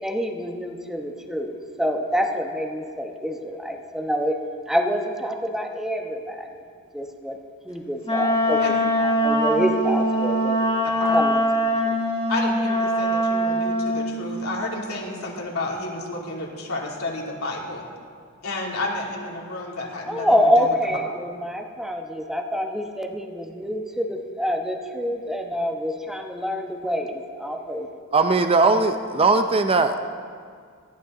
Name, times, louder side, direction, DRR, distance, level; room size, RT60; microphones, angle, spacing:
voice 1, 0.0-4.4 4.7-6.5 6.9-7.4 7.6-8.6 9.0-10.6 11.1-11.4 11.9-12.0 20.1-27.9, equal, ahead, 3 dB, 1.1 m, -26 dB
Wind instrument woodwind instrument, 8.0-14.1, equal, 25° left, 2.7 m, -22 dB
voice 2, 10.8-11.2 12.3-17.8 18.4-20.3 20.6-20.8, left 2 dB, 85° left, -3 dB, 2.8 m, -31 dB
voice 3, 28.1-30.0, right 3 dB, 25° right, 7 dB, 0.6 m, -19 dB
19.5 x 14.5 x 3.8 m, 2.1 s
head